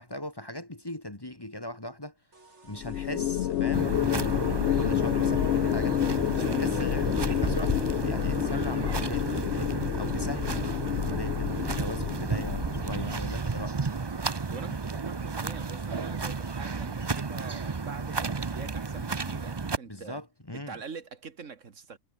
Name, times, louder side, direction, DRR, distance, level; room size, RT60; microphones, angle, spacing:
voice 1, 0.0-2.2 2.6-6.0 6.3-10.7 11.0-13.8 19.9-20.8, left 1 dB, 20° left, 1.7 m, -39 dB
sound 1, 2.3-8.5, right 3 dB, 65° right, 3.8 m, -48 dB
sound 2, 2.8-13.3, left 12 dB, 65° left, 0.8 m, -29 dB
sound 3, 3.7-19.8, right 4 dB, 25° right, 0.6 m, -32 dB
voice 2, 6.4-6.7 14.5-20.2 20.5-22.0, right 5 dB, 80° right, 2.1 m, -44 dB
omnidirectional pair, 1.3 m